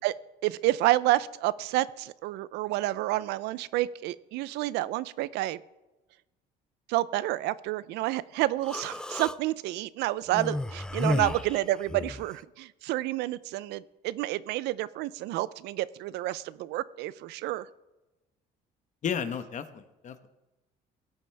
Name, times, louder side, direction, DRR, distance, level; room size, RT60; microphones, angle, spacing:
voice 1, 0.4-5.6 6.9-17.7, right 16 dB, 85° right, 18 dB, 0.4 m, -29 dB
Human voice, 8.6-9.4 10.3-12.3, left 1 dB, 5° left, 0.3 m, -32 dB
voice 2, 11.0-11.3 19.0-20.3, left 7 dB, 45° left, 10 dB, 1.0 m, -33 dB
17.0 x 9.0 x 3.3 m, 1.0 s
cardioid pair, 110°, 17 cm